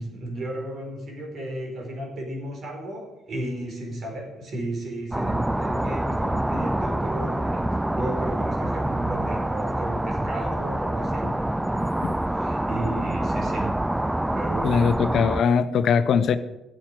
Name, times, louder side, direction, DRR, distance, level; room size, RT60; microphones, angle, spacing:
voice 1, 0.0-11.4 12.3-13.8 14.3-14.9, right 1 dB, 50° right, 1 dB, 4.7 m, -34 dB
sound 1, 5.1-15.4, right 1 dB, 10° right, 0.5 m, -26 dB
voice 2, 14.6-16.4, left 6 dB, 55° left, 13 dB, 0.7 m, -21 dB
10.5 x 8.6 x 7.7 m, 0.94 s
hypercardioid pair, 50°, 0 cm